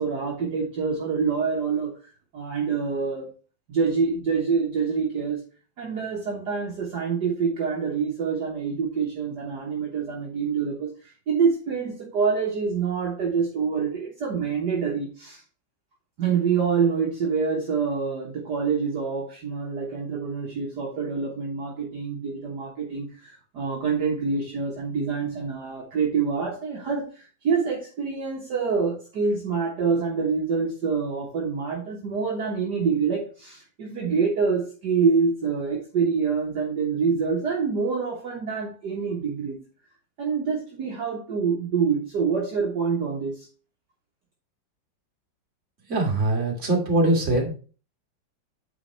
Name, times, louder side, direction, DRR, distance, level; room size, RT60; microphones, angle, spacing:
voice 1, 0.0-1.9 2.3-3.3 3.7-5.4 5.8-10.9 11.3-15.4 16.2-27.1 27.4-39.6 40.2-43.5, right 5 dB, 60° right, 1.8 m, -26 dB
voice 2, 45.9-47.5, right 2 dB, 40° right, 2.1 m, -22 dB
8.7 x 4.1 x 4.0 m
omnidirectional pair, 2.1 m